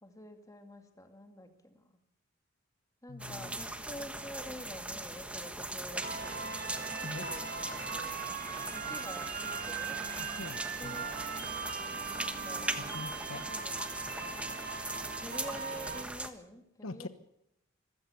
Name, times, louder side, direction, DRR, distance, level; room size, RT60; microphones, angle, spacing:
voice 1, 0.0-1.9 3.0-6.4 6.7-8.4 8.6-9.3 9.6-10.0 10.6-11.5 12.1-12.8 13.3-14.7 15.2-17.1, left 1 dB, 15° left, 5 dB, 2.3 m, -48 dB
voice 2, 3.1-3.6 7.0-7.3 10.2-11.0 12.8-13.5 16.8-17.1, left 2 dB, 80° left, 11 dB, 1.2 m, -44 dB
sound 1, 3.2-16.3, right 2 dB, 5° right, 1.3 m, -40 dB
sound 2, 6.0-16.0, right 5 dB, 45° right, 1.9 m, -40 dB
26.0 x 15.5 x 7.0 m, 0.81 s
head